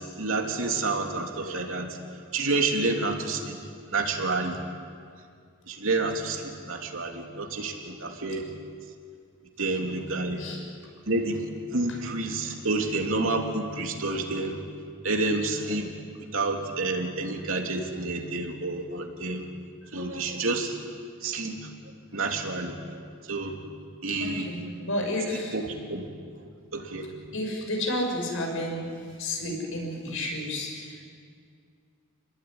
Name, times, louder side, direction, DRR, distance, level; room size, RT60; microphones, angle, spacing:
voice 1, 0.0-2.0 2.3-3.6 3.9-4.6 5.7-8.5 9.6-10.4 11.1-11.4 11.7-14.6 15.0-15.9 16.3-19.4 19.9-20.8 21.2-21.7 22.1-23.0 23.3-23.6 24.0-24.5 25.5-26.0 26.7-27.1, right 3 dB, 65° right, 2 dB, 3.2 m, -29 dB
voice 2, 24.2-25.5 27.3-31.0, left 1 dB, 65° left, 2 dB, 6.5 m, -31 dB
28.5 x 21.0 x 9.8 m, 2.2 s
head